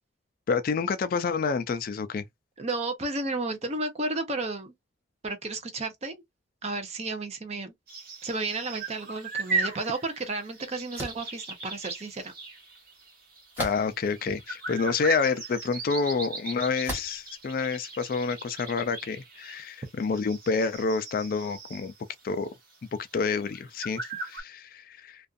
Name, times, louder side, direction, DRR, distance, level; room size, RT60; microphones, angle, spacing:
voice 1, 0.5-2.2 13.6-21.9 22.2-22.5 23.1-25.3, left 5 dB, 45° left, 0.3 m, -28 dB
voice 2, 2.6-4.7 5.2-6.2 6.6-7.7 8.2-12.3, right 2 dB, 35° right, 0.6 m, -32 dB
sound 1, 7.9-22.2 22.5-22.6 23.0-23.1 23.4-24.4, right 3 dB, 50° right, 1.1 m, -37 dB
sound 2, 10.9-11.3 13.5-14.1 14.8-14.9 16.8-17.2, equal, 10° right, 1.2 m, -35 dB
2.5 x 2.3 x 2.4 m
head